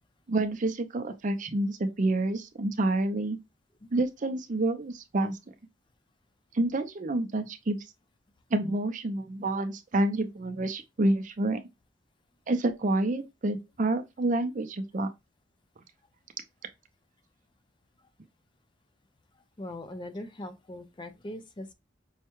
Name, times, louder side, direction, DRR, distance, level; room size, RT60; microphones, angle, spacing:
voice 1, 0.3-3.4 3.9-5.4 6.5-7.8 8.5-11.6 12.5-15.1, right 2 dB, 45° right, 0.5 m, -28 dB
voice 2, 19.6-21.7, left 1 dB, 25° left, 0.5 m, -40 dB
5.5 x 2.2 x 3.0 m
head